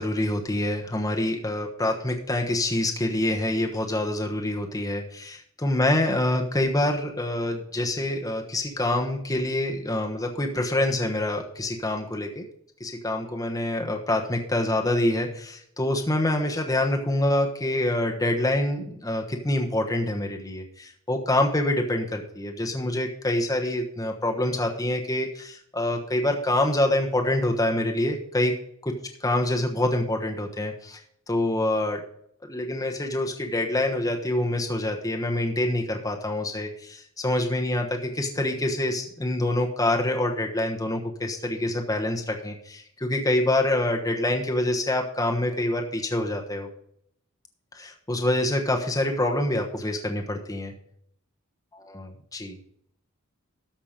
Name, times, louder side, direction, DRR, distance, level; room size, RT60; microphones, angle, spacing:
voice 1, 0.0-12.4 12.8-28.5 28.8-28.9 29.2-31.0 31.3-32.0 32.5-46.7 47.7-50.7 51.7-52.6, left 1 dB, 15° left, 2 dB, 1.2 m, -26 dB
13.5 x 6.0 x 5.1 m, 0.69 s
head